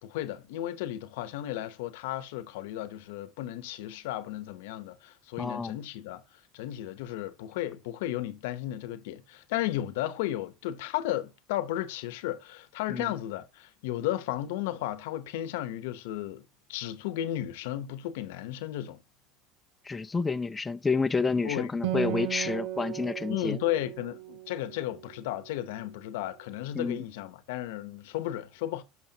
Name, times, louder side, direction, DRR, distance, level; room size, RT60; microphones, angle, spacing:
voice 1, 0.0-6.2 6.5-19.0 21.4-21.7 23.3-28.8, left 13 dB, 85° left, 0.9 m, -34 dB
voice 2, 5.4-5.8 12.9-13.1 19.8-23.6 26.7-27.0, left 4 dB, 15° left, 0.5 m, -29 dB
Acoustic guitar, 21.8-25.6, right 13 dB, 75° right, 1.0 m, -36 dB
11.0 x 6.2 x 2.9 m
supercardioid pair, 125°, 0 cm